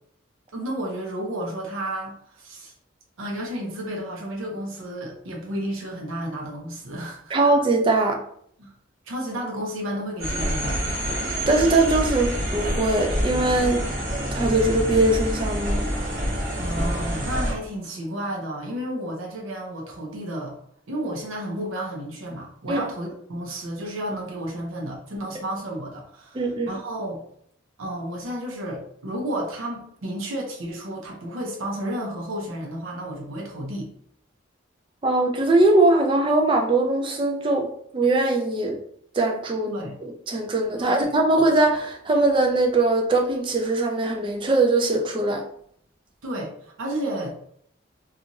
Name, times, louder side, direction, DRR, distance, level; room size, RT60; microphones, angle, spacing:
voice 1, 0.5-2.7 3.2-7.4 8.6-8.7 9.1-10.8 16.6-20.5 20.9-27.2 27.8-33.9 39.6-40.0 40.8-41.1 46.2-47.3, right 1 dB, 80° right, 0 dB, 0.6 m, -32 dB
voice 2, 7.3-8.2 11.5-13.8 14.3-15.9 22.7-22.8 26.3-26.7 35.0-37.7 37.9-38.8 39.1-45.4, right 2 dB, 25° right, 2 dB, 0.4 m, -21 dB
sound 1, 10.2-17.5, equal, 45° right, 1.1 m, -27 dB
2.6 x 2.4 x 2.8 m, 0.65 s
head